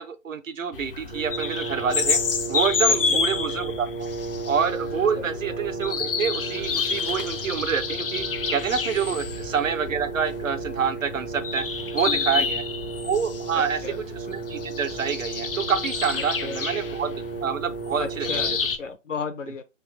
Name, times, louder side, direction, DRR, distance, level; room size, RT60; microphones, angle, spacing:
voice 1, 0.0-2.2 2.5-4.1 4.5-11.6 11.9-12.6 13.0-17.1 17.4-18.5, right 7 dB, 75° right, 0.8 m, -27 dB
sound 1, 0.7-18.8, left 5 dB, 45° left, 0.5 m, -29 dB
Brass instrument, 1.1-18.9, right 4 dB, 10° right, 0.5 m, -35 dB
voice 2, 12.0-12.5 13.5-14.0 16.4-16.6 18.0-19.6, left 5 dB, 70° left, 0.9 m, -34 dB
3.7 x 2.7 x 3.2 m
figure-of-eight pair, 145°, 39 cm